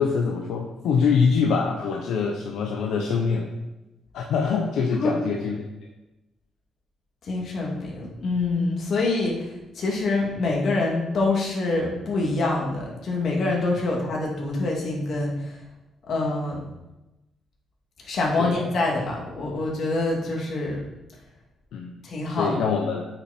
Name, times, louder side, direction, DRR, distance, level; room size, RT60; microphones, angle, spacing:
voice 1, 0.0-3.5 4.1-5.6 18.4-18.6 21.7-22.0 22.3-23.1, left 5 dB, 80° left, 1 dB, 0.9 m, -24 dB
voice 2, 7.2-15.6 16.1-16.6 18.0-20.8 22.0-22.6, left 2 dB, 60° left, -1 dB, 2.5 m, -25 dB
8.5 x 6.3 x 4.4 m, 0.99 s
cardioid pair, 90°, 0 cm